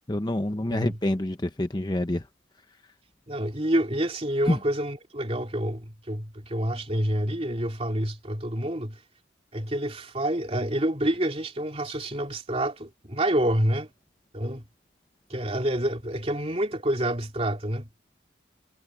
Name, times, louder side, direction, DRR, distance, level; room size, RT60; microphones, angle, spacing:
voice 1, 0.1-2.2 4.5-4.6, left 1 dB, 20° left, 0.8 m, -26 dB
voice 2, 3.3-9.0 9.5-13.9 14.3-14.6 15.3-17.9, right 1 dB, 30° right, 3.1 m, -28 dB
head